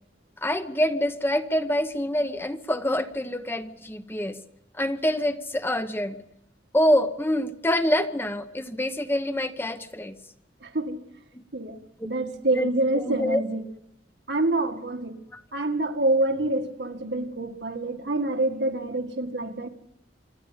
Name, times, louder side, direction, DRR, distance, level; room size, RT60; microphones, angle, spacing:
voice 1, 0.4-4.4 4.8-6.2 6.7-10.1 11.3-11.4 12.0-12.1 12.5-13.4, left 1 dB, 15° left, 9 dB, 1.0 m, -26 dB
voice 2, 10.6-11.0 11.5-11.8 12.0-13.6 14.3-15.2 15.5-19.7, right 2 dB, 70° right, 5 dB, 2.0 m, -26 dB
26.0 x 12.5 x 9.5 m, 0.79 s
head